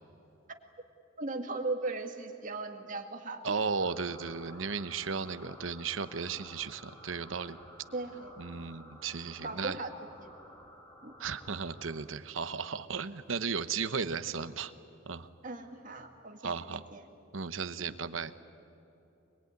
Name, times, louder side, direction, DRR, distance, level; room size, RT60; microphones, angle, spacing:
voice 1, 1.2-3.4 7.9-8.8 9.4-9.9 10.2-10.3 11.0-11.1 15.4-17.1 17.8-18.0, right 3 dB, 45° right, 4 dB, 2.2 m, -38 dB
voice 2, 3.4-7.6 8.4-9.8 11.2-14.7 15.1-15.3 16.4-16.8 17.3-18.4, right 5 dB, 80° right, 12 dB, 1.0 m, -35 dB
sound 1, 3.8-12.0, equal, 20° left, 3.2 m, -53 dB
25.0 x 22.5 x 9.7 m, 3.0 s
head